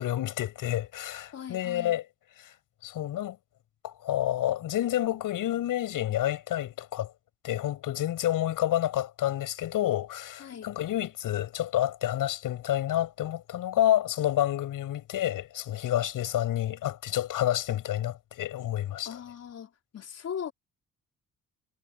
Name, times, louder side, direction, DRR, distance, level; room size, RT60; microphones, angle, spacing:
voice 1, 0.0-2.1 2.4-2.5 2.8-3.4 3.8-7.1 7.4-19.2, left 13 dB, 80° left, 6.2 m, -29 dB
voice 2, 1.3-1.9 10.4-10.7 19.1-20.5, left 8 dB, 50° left, 3.8 m, -39 dB
cardioid pair, 135°, 32 cm